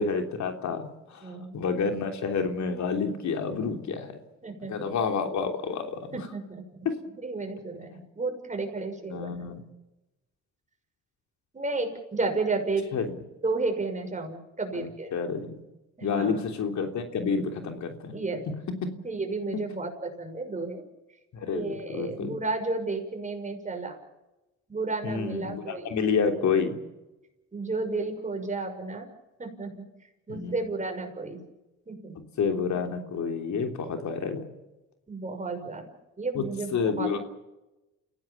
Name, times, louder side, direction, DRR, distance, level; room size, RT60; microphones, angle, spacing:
voice 1, 0.0-4.2 4.7-6.2 6.8-6.9 7.9-8.0 9.1-9.6 12.9-13.2 14.7-15.6 16.0-18.2 18.5-18.6 18.8-18.9 19.5-19.6 21.3-22.4 25.0-26.8 30.3-30.5 32.4-34.5 36.3-36.5 36.7-37.2, left 5 dB, 70° left, 5 dB, 3.2 m, -29 dB
voice 2, 1.2-1.6 4.4-4.9 6.1-6.6 7.2-9.5 11.5-12.9 13.4-15.1 16.0-16.4 18.1-18.4 19.0-20.8 21.5-24.0 24.7-25.9 27.5-29.1 29.4-29.8 30.3-31.4 31.9-32.1 35.1-35.9 36.2-37.2, right 3 dB, 25° right, 4 dB, 6.2 m, -32 dB
29.5 x 16.5 x 7.2 m, 1.0 s
cardioid pair, 90°, 30 cm